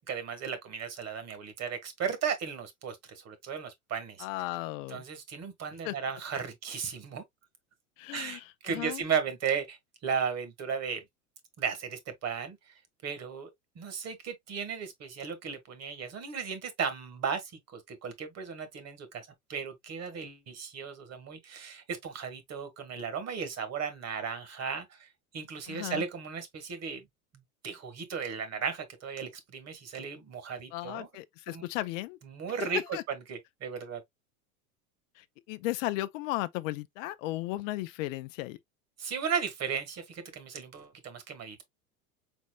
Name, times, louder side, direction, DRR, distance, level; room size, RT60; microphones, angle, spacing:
voice 1, 0.1-4.2 4.9-7.2 8.1-9.8 10.0-11.0 11.6-12.7 13.0-13.5 13.7-19.2 19.5-25.1 25.3-27.0 27.6-31.1 31.5-31.6 32.2-34.0 39.0-41.6, right 6 dB, 35° right, 1.6 m, -35 dB
voice 2, 4.2-5.0 5.8-6.0 8.0-9.0 25.7-26.0 30.7-32.2 32.6-33.0 35.2-38.6, left 17 dB, 60° left, 0.6 m, -35 dB
4.3 x 4.1 x 2.3 m
hypercardioid pair, 90°, 42 cm